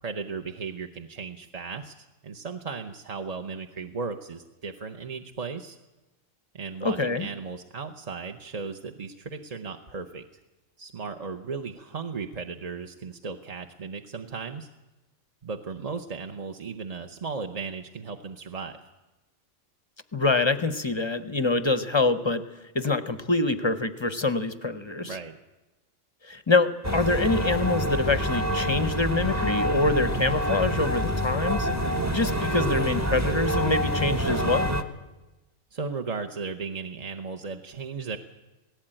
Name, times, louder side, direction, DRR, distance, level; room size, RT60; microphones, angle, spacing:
voice 1, 0.0-5.8 6.5-10.2 10.8-14.7 15.4-18.8 25.0-25.4 35.7-38.2, right 5 dB, 35° right, 6 dB, 0.7 m, -36 dB
voice 2, 6.8-7.3 20.1-22.4 22.7-25.2 26.2-31.7 32.1-34.7, left 3 dB, 30° left, 12 dB, 0.6 m, -25 dB
sound 1, 26.8-34.8, equal, 15° right, 1.0 m, -27 dB
18.0 x 16.0 x 8.9 m, 1.1 s
omnidirectional pair, 1.3 m